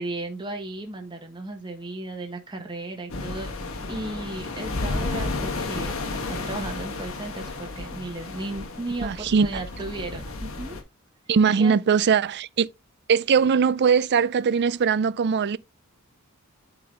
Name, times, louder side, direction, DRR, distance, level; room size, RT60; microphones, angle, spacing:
voice 1, 0.0-3.5 3.9-10.8 11.3-11.8, right 2 dB, 20° right, 1.3 m, -35 dB
sound 1, 3.1-10.8, left 3 dB, 65° left, 1.6 m, -32 dB
voice 2, 9.0-9.6 11.3-12.7 13.1-15.6, right 6 dB, 50° right, 0.4 m, -21 dB
8.6 x 3.8 x 3.8 m
head